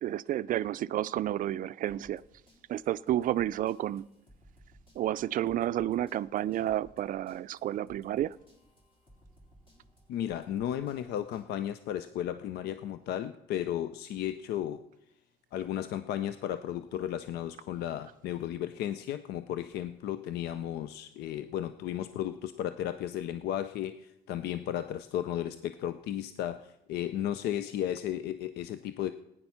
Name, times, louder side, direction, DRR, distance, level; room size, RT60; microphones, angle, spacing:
voice 1, 0.0-2.2 2.7-4.1 5.0-8.4, right 12 dB, 55° right, 16 dB, 0.4 m, -31 dB
sound 1, 1.9-11.5, equal, 30° left, 3.6 m, -61 dB
voice 2, 10.1-14.8 15.5-29.1, left 11 dB, 75° left, 12 dB, 0.5 m, -34 dB
15.0 x 9.7 x 5.7 m, 0.88 s
cardioid pair, 110°, 17 cm